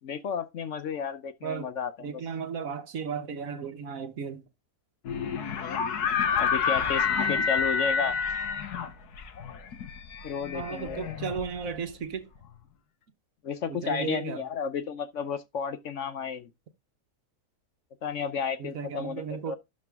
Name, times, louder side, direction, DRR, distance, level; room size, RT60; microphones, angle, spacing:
voice 1, 0.0-2.1 6.3-8.2 10.2-11.0 13.4-16.5 18.0-19.6, left 6 dB, 60° left, 1.0 m, -32 dB
voice 2, 2.0-4.4 10.5-12.3 13.7-14.4 18.6-19.6, right 6 dB, 60° right, 1.4 m, -35 dB
sound 1, 5.1-11.9, left 6 dB, 85° left, 1.7 m, -29 dB
12.0 x 4.9 x 3.6 m
omnidirectional pair, 1.6 m